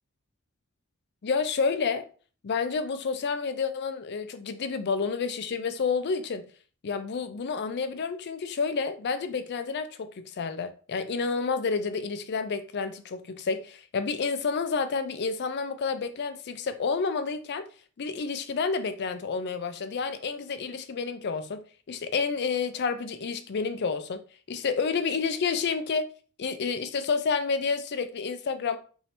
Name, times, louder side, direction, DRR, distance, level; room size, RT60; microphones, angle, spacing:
voice 1, 1.2-2.1 2.4-6.5 6.8-17.7 18.0-24.2 24.5-26.1 26.4-28.8, left 5 dB, 50° left, 0.4 m, -29 dB
3.1 x 2.7 x 4.2 m
head